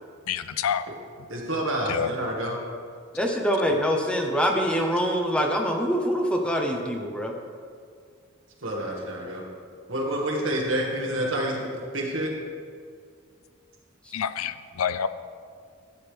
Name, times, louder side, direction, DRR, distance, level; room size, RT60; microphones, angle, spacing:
voice 1, 0.3-0.9 1.9-2.1 14.1-15.1, left 8 dB, 85° left, 13 dB, 0.4 m, -27 dB
voice 2, 1.3-2.5 8.6-9.4 9.9-11.6 11.9-12.3, right 1 dB, 65° right, -1 dB, 1.7 m, -28 dB
voice 3, 3.1-7.3, equal, 5° left, 1 dB, 0.8 m, -24 dB
12.0 x 8.0 x 3.4 m, 2.2 s
head